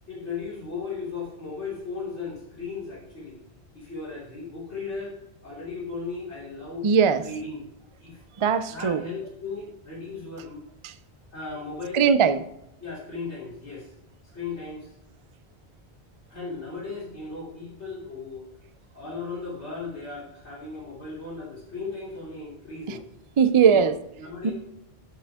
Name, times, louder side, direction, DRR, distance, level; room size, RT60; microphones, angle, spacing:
voice 1, 0.1-3.4 3.7-6.9 7.2-7.7 8.0-8.2 8.7-10.6 11.3-12.0 12.8-13.9 14.3-14.9 16.3-18.5 18.9-23.0 23.7-24.5, left 4 dB, 85° left, -4 dB, 3.6 m, -36 dB
voice 2, 6.8-7.2 8.4-9.0 10.8-10.9 11.9-12.4 22.9-23.0 23.4-24.0 24.4-24.5, right 6 dB, 40° right, 12 dB, 0.4 m, -20 dB
12.5 x 6.2 x 3.6 m, 0.82 s
omnidirectional pair, 1.1 m